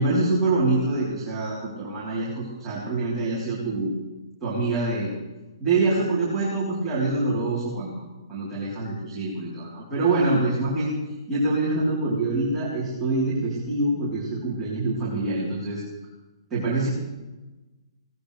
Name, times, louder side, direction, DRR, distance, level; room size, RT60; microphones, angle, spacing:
voice 1, 0.0-3.9 4.4-5.1 5.6-8.0 8.3-10.9 11.3-15.8 16.5-16.9, right 2 dB, 10° right, -9 dB, 3.8 m, -25 dB
21.0 x 18.0 x 3.4 m, 1.1 s
hypercardioid pair, 170°, 3 cm